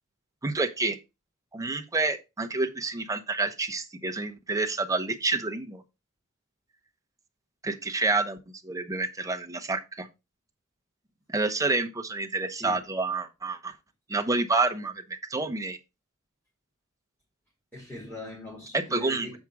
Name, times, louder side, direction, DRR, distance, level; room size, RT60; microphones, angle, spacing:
voice 1, 0.4-1.0 1.5-5.8 7.6-8.4 8.6-10.1 11.3-13.7 14.1-15.8 18.9-19.4, right 3 dB, 15° right, 0.9 m, -28 dB
voice 2, 12.6-12.9 17.7-19.4, left 1 dB, 5° left, 3.0 m, -41 dB
7.3 x 5.0 x 4.7 m
head